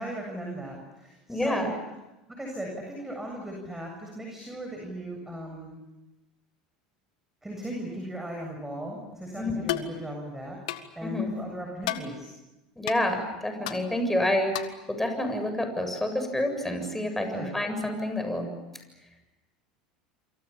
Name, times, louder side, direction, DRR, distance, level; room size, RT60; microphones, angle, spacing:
voice 1, 0.0-1.7 2.4-5.8 7.4-10.6 11.0-12.3 17.2-17.5, right 1 dB, 10° right, 1 dB, 7.7 m, -37 dB
voice 2, 1.3-1.7 9.4-9.6 11.0-11.3 12.8-14.5 14.9-18.5, left 1 dB, 5° left, 6 dB, 7.5 m, -28 dB
sound 1, 9.7-9.9 10.7-10.9 11.8-12.1 12.9-13.0 13.7-13.8 14.5-14.8, left 13 dB, 75° left, 1.8 m, -31 dB
28.5 x 26.0 x 7.2 m, 1.0 s
hypercardioid pair, 85°, 4 cm